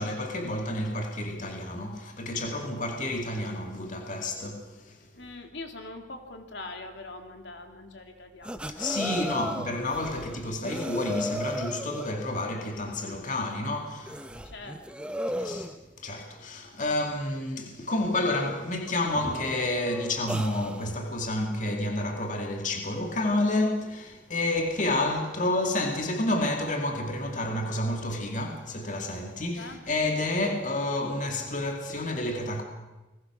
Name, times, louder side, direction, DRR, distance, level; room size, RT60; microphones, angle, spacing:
voice 1, 0.0-5.1 8.7-14.3 15.4-32.6, left 2 dB, 40° left, 2.3 m, -30 dB
voice 2, 5.1-8.9 9.3-9.5 14.4-15.1 29.6-29.8, left 2 dB, 70° left, 3.0 m, -43 dB
sound 1, 8.4-12.2 12.9-13.0 13.5-13.6 14.0-15.7 17.7-17.8 18.4-18.6 18.9-21.0 24.1-24.2 24.6-24.9 26.0-26.1, equal, 5° right, 1.0 m, -36 dB
30.0 x 21.0 x 6.2 m
head